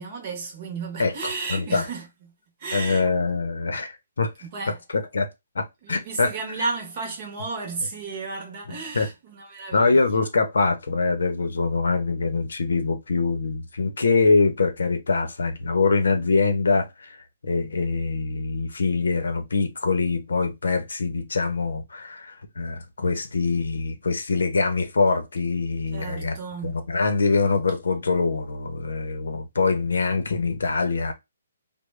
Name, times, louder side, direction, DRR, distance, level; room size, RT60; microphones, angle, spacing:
voice 1, 0.0-2.1 2.6-3.1 4.4-4.8 5.8-10.3 25.9-26.7, right 4 dB, 25° right, 0.9 m, -33 dB
voice 2, 1.0-1.9 2.7-4.3 4.9-5.3 5.5-6.3 8.7-9.1 9.7-26.4 26.6-31.1, left 3 dB, 80° left, 0.8 m, -24 dB
3.5 x 2.2 x 3.2 m
hypercardioid pair, 175°, 0 cm